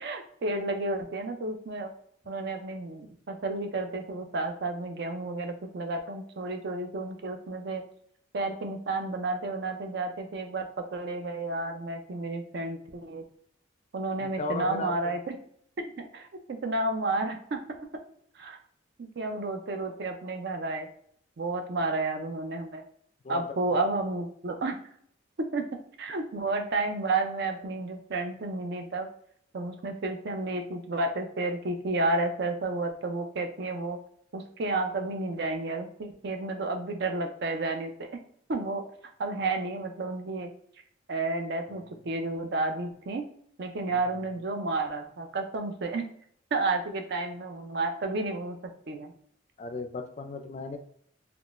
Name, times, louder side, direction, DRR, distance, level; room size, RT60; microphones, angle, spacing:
voice 1, 0.0-1.9 2.3-7.8 8.3-13.2 13.9-15.4 15.8-17.6 18.4-18.6 19.0-20.9 21.4-22.8 23.3-24.8 25.5-25.7 26.0-29.1 29.5-34.0 34.3-38.1 38.5-38.8 39.2-40.5 41.1-43.2 43.6-46.0 46.5-49.1, right 2 dB, 60° right, 5 dB, 0.5 m, -31 dB
voice 2, 14.2-15.1 23.2-23.4 41.7-41.8 49.6-50.8, left 3 dB, 35° left, 6 dB, 0.3 m, -36 dB
3.6 x 2.3 x 2.4 m, 0.65 s
head